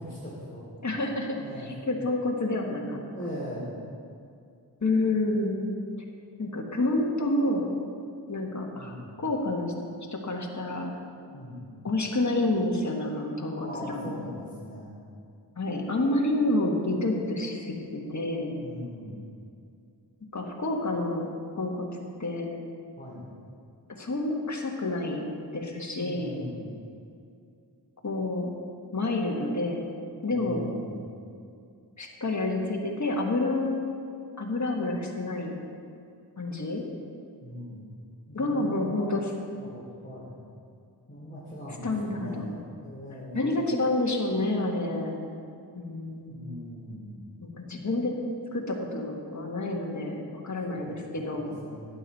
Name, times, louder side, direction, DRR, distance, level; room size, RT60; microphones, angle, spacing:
voice 1, 0.0-0.7 1.3-1.7 3.1-3.7 8.7-9.1 11.3-11.6 13.5-14.9 18.5-19.2 23.0-23.2 25.9-26.6 30.3-31.1 37.4-37.8 38.3-39.1 39.6-40.3 41.1-43.4 46.3-47.2 50.7-50.9 51.3-51.9, equal, 25° left, -8 dB, 3.0 m, -40 dB
voice 2, 0.8-3.0 4.8-5.7 6.4-7.7 8.3-9.7 10.1-10.9 11.8-14.2 15.6-18.6 20.3-21.3 21.6-21.9 22.2-22.5 23.9-26.3 28.0-28.5 28.9-29.9 30.2-30.7 32.0-33.9 34.4-35.6 36.4-36.8 38.3-39.3 41.8-42.6 43.3-45.2 45.7-46.5 47.4-48.1 48.5-51.6, left 2 dB, 40° left, 1 dB, 1.6 m, -29 dB
11.5 x 9.3 x 4.2 m, 2.4 s
cardioid pair, 50°, 42 cm